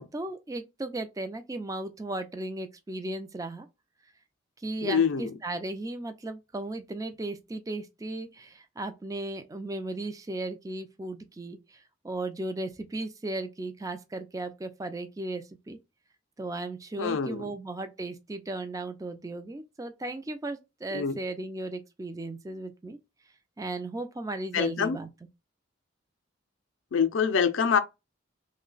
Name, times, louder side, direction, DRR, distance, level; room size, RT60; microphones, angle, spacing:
voice 1, 0.0-3.7 4.6-15.8 16.4-23.0 23.6-25.1, right 2 dB, 15° right, 0.4 m, -36 dB
voice 2, 4.8-5.4 17.0-17.5 20.9-21.2 24.5-25.0 26.9-27.8, left 6 dB, 80° left, 0.4 m, -25 dB
3.2 x 2.1 x 3.8 m
head